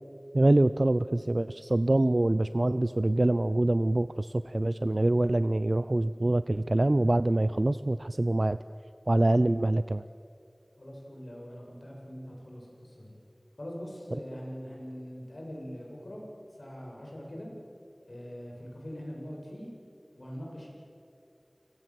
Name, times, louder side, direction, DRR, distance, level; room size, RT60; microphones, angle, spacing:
voice 1, 0.3-8.6 9.1-10.0, right 1 dB, 65° right, 13 dB, 0.5 m, -25 dB
voice 2, 10.8-13.1 13.6-16.2 16.6-17.5 18.1-19.7 20.1-20.7, equal, 70° left, -2 dB, 7.7 m, -42 dB
29.5 x 18.5 x 7.6 m, 2.4 s
wide cardioid pair, 40°, 0 cm